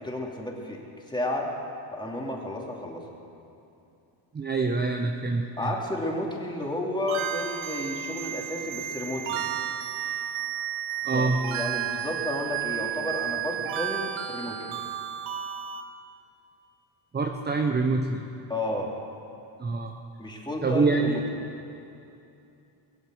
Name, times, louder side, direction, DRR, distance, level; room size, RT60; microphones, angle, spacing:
voice 1, 0.0-1.5 1.9-3.1 5.6-9.4 11.1-14.7 18.5-18.9 20.2-21.4, left 1 dB, 10° left, -1 dB, 2.8 m, -32 dB
voice 2, 4.3-5.7 11.0-11.4 17.1-18.2 19.6-19.9 20.6-21.2, right 3 dB, 20° right, 3 dB, 0.9 m, -25 dB
sound 1, 7.1-15.8, right 10 dB, 75° right, 1.2 m, -32 dB
22.0 x 8.0 x 8.0 m, 2.8 s
cardioid pair, 105°, 50 cm